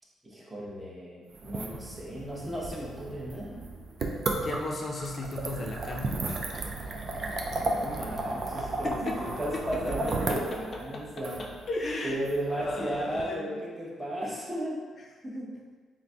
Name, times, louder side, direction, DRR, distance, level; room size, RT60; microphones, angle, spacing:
voice 1, 0.2-3.7 7.7-11.4 12.0-14.9 15.2-15.5, right 1 dB, 15° right, -5 dB, 0.7 m, -35 dB
sound 1, 1.3-13.2, right 2 dB, 45° right, 0.3 m, -34 dB
voice 2, 4.4-6.4 6.7-6.8 8.8-9.2 9.5-9.6 10.3-10.6 10.9-11.0 11.4-12.2 12.5-13.6, left 2 dB, 35° left, 0 dB, 0.4 m, -35 dB
3.9 x 2.5 x 2.2 m, 1.5 s
cardioid pair, 130°, 0 cm